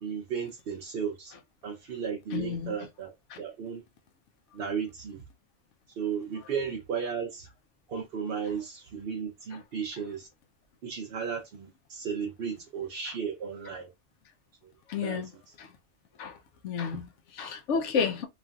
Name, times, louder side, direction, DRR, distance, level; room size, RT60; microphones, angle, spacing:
voice 1, 0.0-1.3 1.6-3.1 3.4-3.8 4.5-5.2 6.0-7.5 7.9-10.3 10.8-13.9 15.0-15.2, right 6 dB, 60° right, 0.8 m, -34 dB
voice 2, 2.3-2.8 3.3-3.4 14.9-15.3 15.6-15.7 16.2-16.4 16.6-18.3, left 6 dB, 85° left, 1.0 m, -31 dB
3.1 x 2.4 x 2.3 m
omnidirectional pair, 1.2 m